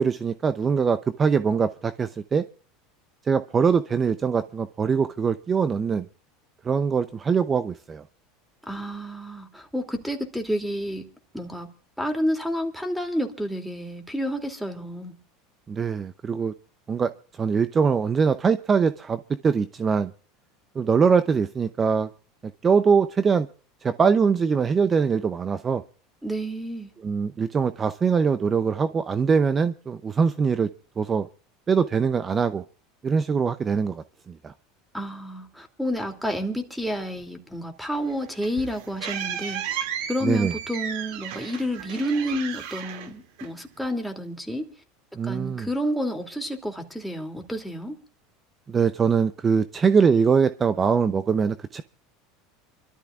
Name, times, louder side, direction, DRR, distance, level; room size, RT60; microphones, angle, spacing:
voice 1, 0.0-2.4 3.2-6.1 6.6-8.0 15.7-16.5 16.9-17.1 17.4-20.1 20.8-22.1 22.4-23.5 23.8-25.8 27.0-30.7 31.0-31.3 31.7-32.6 33.0-34.5 40.2-40.5 45.2-45.7 48.7-51.8, right 6 dB, 25° right, 0.6 m, -22 dB
voice 2, 8.6-11.0 11.3-11.7 12.0-15.1 26.2-26.9 34.9-39.8 40.1-44.6 45.2-48.0, equal, ahead, 2.7 m, -30 dB
sound 1, 38.0-43.9, right 9 dB, 70° right, 2.3 m, -34 dB
28.0 x 13.0 x 2.4 m
supercardioid pair, 105°, 0 cm